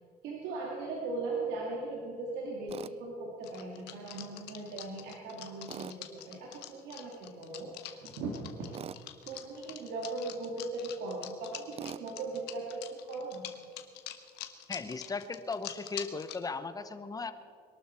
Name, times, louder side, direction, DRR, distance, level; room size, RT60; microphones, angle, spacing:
voice 1, 0.2-8.8 9.2-13.5, right 3 dB, 90° right, -2 dB, 2.3 m, -39 dB
Tools, 2.7-2.9 5.7-6.0 8.7-9.0 11.8-12.1, right 9 dB, 35° right, 0.4 m, -42 dB
sound 1, 3.4-16.4, left 13 dB, 85° left, 1.1 m, -45 dB
voice 2, 14.7-17.3, left 4 dB, 20° left, 11 dB, 0.9 m, -37 dB
22.0 x 12.0 x 4.4 m, 2.3 s
cardioid pair, 110°, 17 cm